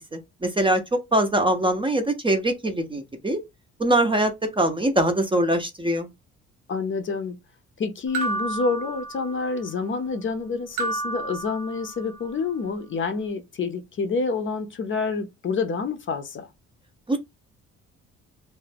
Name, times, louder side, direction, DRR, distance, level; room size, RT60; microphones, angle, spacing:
voice 1, 0.1-0.8 1.1-3.4 3.8-6.1 17.1-17.2, right 1 dB, 15° right, 0.5 m, -23 dB
voice 2, 6.7-7.4 7.8-16.5, left 4 dB, 40° left, 0.5 m, -28 dB
sound 1, 8.1-9.6 10.8-12.2, right 3 dB, 80° right, 0.7 m, -31 dB
2.4 x 2.1 x 3.3 m
cardioid pair, 90°, 30 cm